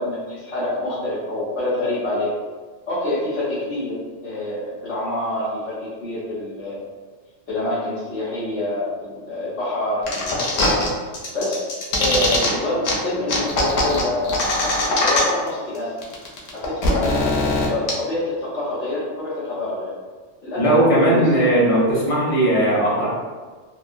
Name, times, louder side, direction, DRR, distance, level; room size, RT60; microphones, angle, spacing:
voice 1, 0.0-2.3 2.9-6.8 7.5-10.8 11.3-11.7 12.0-15.9 16.5-17.4 17.7-19.9 20.4-21.3, left 1 dB, 65° left, -10 dB, 1.1 m, -26 dB
sound 1, 10.1-10.9 11.1-12.5 12.8-12.9 13.3-15.5 15.8-15.9 16.0-17.9, left 2 dB, 90° left, 1.0 m, -21 dB
voice 2, 20.6-23.2, right 1 dB, 35° left, -6 dB, 0.7 m, -18 dB
2.8 x 2.2 x 2.5 m, 1.4 s
omnidirectional pair, 1.3 m